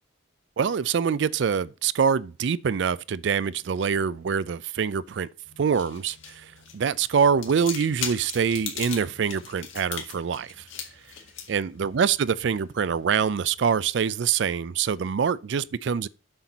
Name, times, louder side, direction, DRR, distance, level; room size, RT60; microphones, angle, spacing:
voice 1, 0.6-5.3 5.6-10.5 11.5-16.1, right 6 dB, 60° right, 0.4 m, -25 dB
sound 1, 5.5-13.9, left 8 dB, 75° left, 1.8 m, -40 dB
7.8 x 6.1 x 4.1 m
head